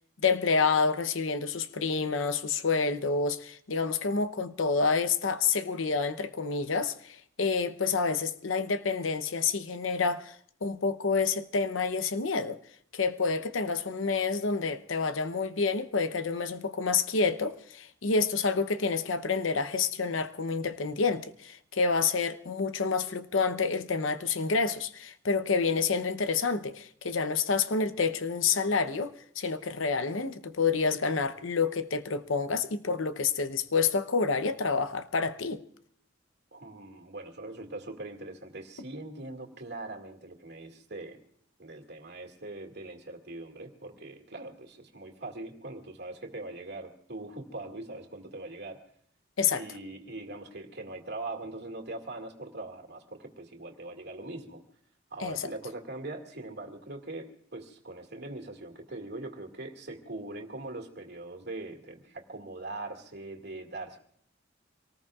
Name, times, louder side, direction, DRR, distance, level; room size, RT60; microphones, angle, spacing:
voice 1, 0.2-10.4 10.6-12.6 12.9-35.6 49.4-49.6 55.2-55.5, left 4 dB, 80° left, 0.8 m, -28 dB
voice 2, 36.5-41.2 41.6-48.8 49.5-54.6 55.1-64.0, right 2 dB, 60° right, 2.1 m, -41 dB
26.0 x 19.0 x 2.4 m
head